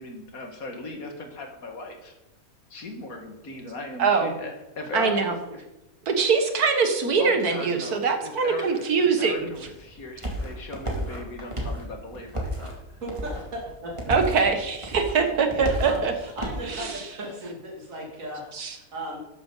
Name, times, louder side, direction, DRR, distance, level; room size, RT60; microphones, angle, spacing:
voice 1, 0.0-2.1 2.7-5.6 7.2-8.9 9.2-12.8 14.1-14.4, left 2 dB, 70° left, 3 dB, 2.2 m, -38 dB
voice 2, 4.0-4.3 4.9-5.4 6.1-9.5 14.1-16.1 16.6-16.9 18.5-18.8, right 5 dB, 85° right, 6 dB, 1.9 m, -23 dB
sound 1, 9.4-16.7, equal, 20° right, 2.3 m, -33 dB
voice 3, 13.0-13.9 15.2-19.2, equal, 60° right, -2 dB, 3.0 m, -36 dB
13.0 x 9.9 x 3.9 m, 0.94 s
omnidirectional pair, 1.6 m